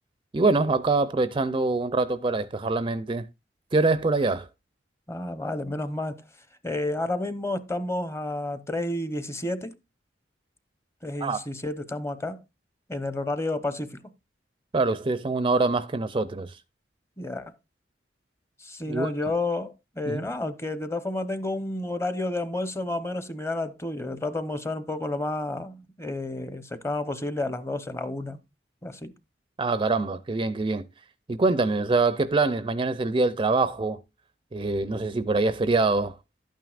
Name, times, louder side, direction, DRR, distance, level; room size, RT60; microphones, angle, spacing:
voice 1, 0.3-3.3 3.7-4.5 11.2-11.4 14.7-16.6 18.9-19.1 20.1-20.3 29.6-30.9 31.3-34.0 34.5-36.2, right 3 dB, 30° right, 0.4 m, -24 dB
voice 2, 5.1-6.2 6.6-9.7 11.0-12.4 12.9-14.0 17.2-17.5 18.6-28.4 28.8-29.1, left 2 dB, 15° left, 0.8 m, -30 dB
12.0 x 9.2 x 2.4 m
head